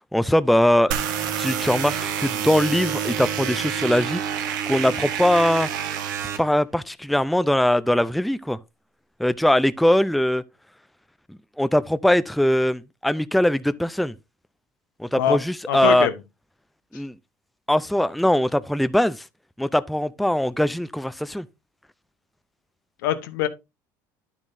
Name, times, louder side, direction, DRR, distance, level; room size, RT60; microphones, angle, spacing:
voice 1, 0.1-0.9 1.4-4.2 4.7-5.7 6.4-8.6 9.2-10.4 11.3-14.1 15.0-16.1 16.9-17.1 17.7-19.2 19.6-21.5, left 1 dB, ahead, 0.4 m, -21 dB
sound 1, 0.9-6.4, right 8 dB, 85° right, 1.3 m, -28 dB
voice 2, 15.7-16.1 23.0-23.5, left 10 dB, 85° left, 1.0 m, -23 dB
9.9 x 7.2 x 2.6 m
hypercardioid pair, 80°, 10 cm